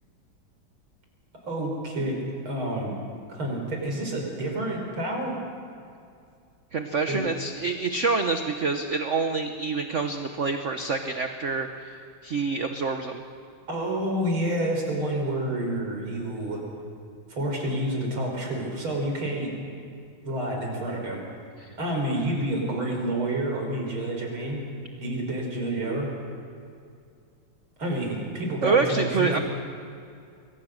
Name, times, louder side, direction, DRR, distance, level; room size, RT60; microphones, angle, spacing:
voice 1, 1.5-2.2 2.5-2.9 3.3-5.4 7.1-7.2 13.7-16.6 17.3-19.5 20.2-21.2 21.8-24.6 25.0-26.1 27.8-29.4, right 1 dB, 75° right, 0 dB, 5.9 m, -29 dB
voice 2, 6.7-12.0 12.2-13.2 21.6-21.8 28.6-29.4, right 4 dB, 45° right, 6 dB, 1.2 m, -26 dB
28.0 x 22.0 x 6.6 m, 2.4 s
omnidirectional pair, 2.3 m